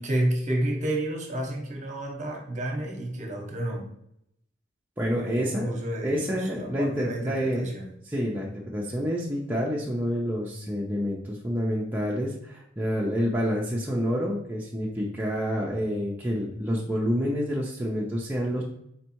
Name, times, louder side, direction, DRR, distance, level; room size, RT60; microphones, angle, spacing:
voice 1, 0.0-3.9 5.1-7.9, right 1 dB, 40° right, 1 dB, 0.9 m, -30 dB
voice 2, 5.0-5.7 6.0-7.7 8.1-18.6, equal, 10° right, -5 dB, 0.5 m, -28 dB
4.3 x 3.2 x 2.9 m, 0.75 s
head